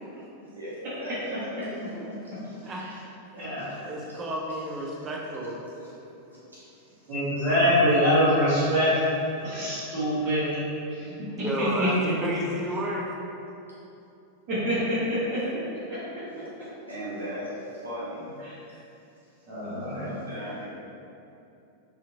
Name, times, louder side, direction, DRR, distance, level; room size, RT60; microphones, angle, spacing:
voice 1, 0.4-1.8 2.4-2.7 3.7-4.2 4.9-5.0 5.6-5.9 6.3-7.1 9.4-9.7 16.3-16.4 16.9-18.3 18.7-18.8 19.7-20.6, equal, 85° right, -9 dB, 0.8 m, -39 dB
voice 2, 2.5-2.8 3.8-5.5 11.0-12.0 12.2-13.1, right 1 dB, 25° right, -3 dB, 0.5 m, -32 dB
voice 3, 3.3-3.7 7.1-9.1 9.4-10.6 10.9-11.1 11.6-12.1 14.5-15.4 15.9-16.0 18.4-18.5 19.5-20.2, equal, 40° right, -13 dB, 0.9 m, -24 dB
2.7 x 2.4 x 2.6 m, 2.8 s
figure-of-eight pair, 90°, 0 cm